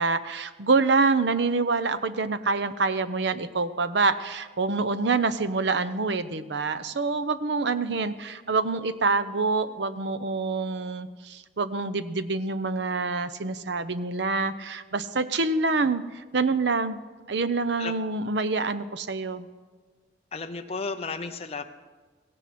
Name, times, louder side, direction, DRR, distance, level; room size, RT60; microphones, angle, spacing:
voice 1, 0.0-17.0 17.3-19.5, right 3 dB, 70° right, 13 dB, 0.7 m, -26 dB
voice 2, 20.3-21.6, left 4 dB, 35° left, 6 dB, 0.7 m, -33 dB
16.5 x 16.5 x 4.3 m, 1.4 s
head